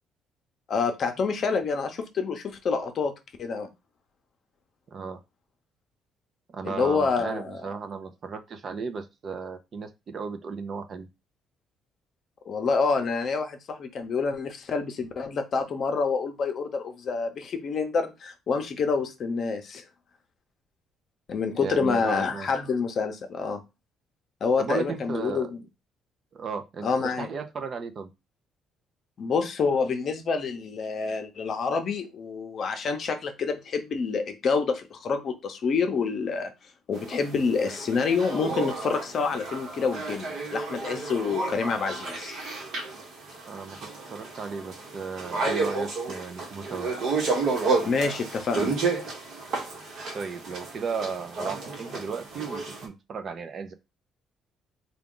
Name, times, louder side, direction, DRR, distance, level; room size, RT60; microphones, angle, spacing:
voice 1, 0.7-3.1 3.4-3.7 6.6-7.6 12.5-19.8 21.3-23.6 24.4-25.6 26.8-27.3 29.2-36.5 36.9-42.4 47.8-48.8, left 5 dB, 45° left, 6 dB, 0.7 m, -27 dB
voice 2, 6.5-11.1 21.5-22.5 24.6-25.5 26.3-28.1 43.5-46.9 50.1-53.7, right 5 dB, 40° right, 8 dB, 0.5 m, -35 dB
sound 1, 36.9-52.9, right 3 dB, 55° right, 1.1 m, -32 dB
3.6 x 2.3 x 3.7 m, 0.24 s
cardioid pair, 140°, 0 cm